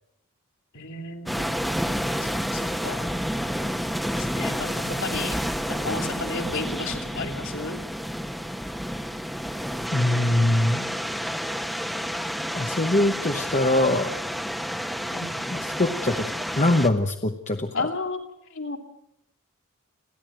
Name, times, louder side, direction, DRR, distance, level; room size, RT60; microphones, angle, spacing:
voice 1, 0.7-1.4 2.5-3.1 4.2-5.4 5.7-7.8 15.1-15.6 17.7-18.2 18.5-18.8, left 3 dB, 60° left, 3 dB, 3.0 m, -32 dB
sound 1, 1.3-16.9, equal, ahead, 1.3 m, -30 dB
voice 2, 9.9-10.8 12.5-14.2 15.5-17.9, left 1 dB, 30° left, 5 dB, 1.0 m, -23 dB
29.5 x 11.5 x 9.0 m, 0.78 s
head